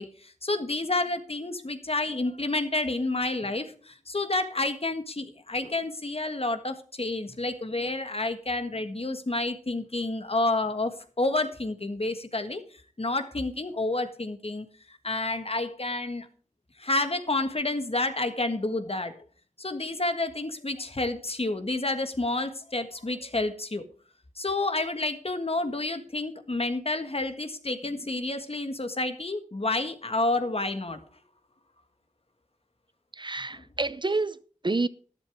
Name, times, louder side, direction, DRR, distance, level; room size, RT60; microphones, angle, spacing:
voice 1, 0.0-12.6 13.0-16.3 16.8-19.2 19.6-23.8 24.3-31.0 33.5-33.6, left 2 dB, 50° left, 1.6 m, -29 dB
voice 2, 33.1-34.9, right 3 dB, 35° right, 0.6 m, -29 dB
13.0 x 11.5 x 3.5 m
wide cardioid pair, 55°, 13 cm